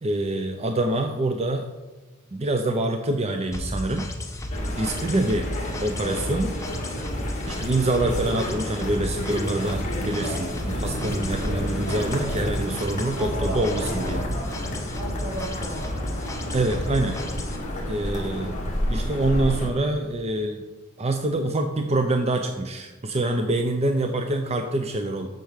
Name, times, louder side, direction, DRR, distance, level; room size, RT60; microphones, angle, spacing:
voice 1, 0.0-1.7 2.3-4.0 4.8-5.4 5.8-6.5 7.5-14.3 16.5-17.2 17.9-18.6 18.9-20.6 21.0-25.3, right 2 dB, 30° right, 5 dB, 0.6 m, -25 dB
sound 1, 3.5-17.6, left 1 dB, 15° left, 1.1 m, -33 dB
sound 2, 4.5-19.7, equal, 35° left, 2.0 m, -31 dB
voice 2, 5.2-5.6 13.2-13.7 14.9-16.3, right 1 dB, 75° right, -2 dB, 3.1 m, -36 dB
8.3 x 6.8 x 6.4 m, 1.2 s
head